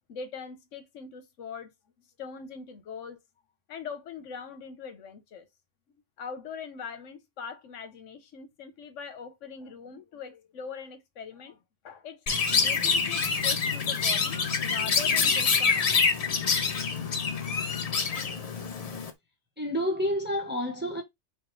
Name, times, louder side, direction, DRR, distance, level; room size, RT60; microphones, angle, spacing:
voice 1, 0.1-1.7 2.2-3.2 3.7-5.5 6.2-14.4 14.6-16.0, left 6 dB, 80° left, 1.1 m, -42 dB
Chirp tweet, 12.3-19.1, left 5 dB, 45° left, 0.5 m, -26 dB
voice 2, 19.6-21.0, equal, 10° right, 0.8 m, -29 dB
4.5 x 2.3 x 3.1 m
omnidirectional pair, 1.3 m